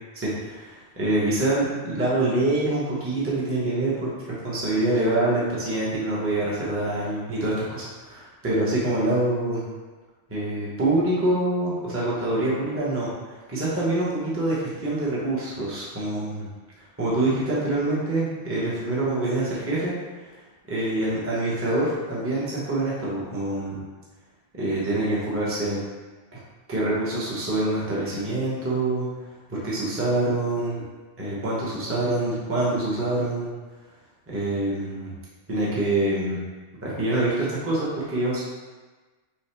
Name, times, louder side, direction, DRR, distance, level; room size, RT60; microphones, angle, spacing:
voice 1, 0.2-9.6 10.3-13.1 13.5-16.5 17.0-19.9 20.7-23.8 24.5-25.8 26.7-29.1 29.5-30.8 31.2-33.5 34.3-35.1 35.5-36.4 36.8-38.4, right 2 dB, 10° right, -7 dB, 0.8 m, -25 dB
5.7 x 2.3 x 3.3 m, 1.3 s
omnidirectional pair, 1.3 m